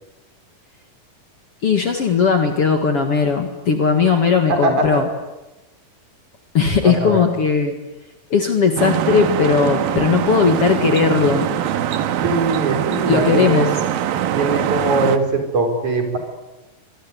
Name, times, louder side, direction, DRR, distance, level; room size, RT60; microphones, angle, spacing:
voice 1, 1.6-5.0 6.5-7.7 8.3-11.5 13.1-13.7, left 5 dB, 45° left, 5 dB, 2.5 m, -17 dB
voice 2, 4.5-5.0 6.8-7.2 12.2-13.7 14.3-16.2, right 2 dB, 50° right, 4 dB, 5.8 m, -21 dB
sound 1, 8.8-15.2, right 10 dB, 75° right, 3.0 m, -22 dB
26.0 x 22.0 x 9.8 m, 1.1 s
omnidirectional pair, 4.3 m